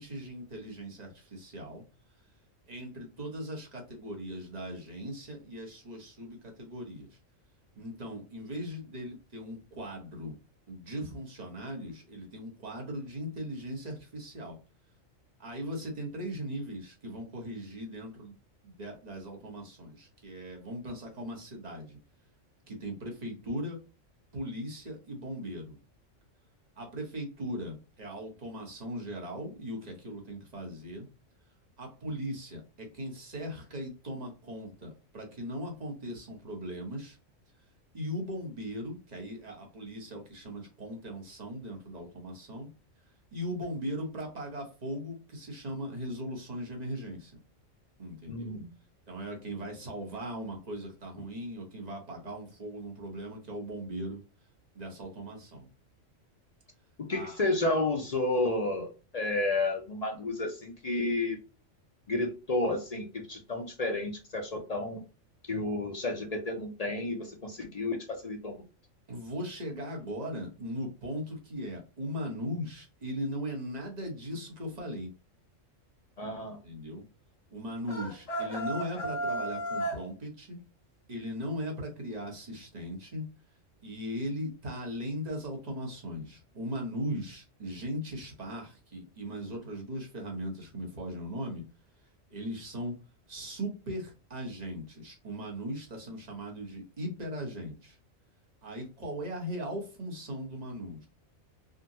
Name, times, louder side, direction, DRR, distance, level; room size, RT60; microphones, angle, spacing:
voice 1, 0.0-1.8 2.7-7.2 7.8-10.4 10.7-14.6 15.4-18.3 18.6-22.0 22.7-23.8 24.3-25.8 26.8-31.1 31.8-37.2 37.9-42.7 43.3-47.3 48.0-48.6 49.1-54.2 54.7-55.7 57.1-57.4 69.1-75.1 76.4-77.0 77.5-80.6 81.1-83.3 83.8-91.6 92.3-93.0 93.3-98.0 98.6-101.1, equal, 35° right, 0 dB, 1.0 m, -38 dB
voice 2, 48.3-48.7 57.1-61.4 62.1-65.0 65.5-68.6 76.2-76.6, left 2 dB, 45° left, 3 dB, 0.5 m, -31 dB
sound 1, 77.9-80.0, right 1 dB, 30° left, 1.1 m, -33 dB
3.7 x 2.1 x 2.6 m, 0.33 s
omnidirectional pair, 1.3 m